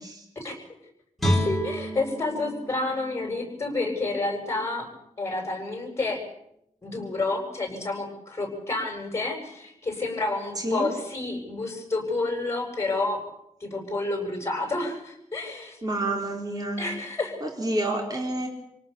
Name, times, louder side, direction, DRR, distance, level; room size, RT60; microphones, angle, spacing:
voice 1, 0.4-0.8 1.4-4.9 5.2-6.2 6.8-13.2 13.6-15.8 16.8-17.3, left 2 dB, 20° left, 3 dB, 7.8 m, -29 dB
Guitar, 1.2-4.3 4.8-4.9, equal, ahead, 4.7 m, -30 dB
voice 2, 10.5-10.9 15.8-16.8 17.4-18.5, right 1 dB, 30° right, 1 dB, 4.3 m, -28 dB
28.5 x 18.0 x 7.1 m, 0.76 s
wide cardioid pair, 145°, 13 cm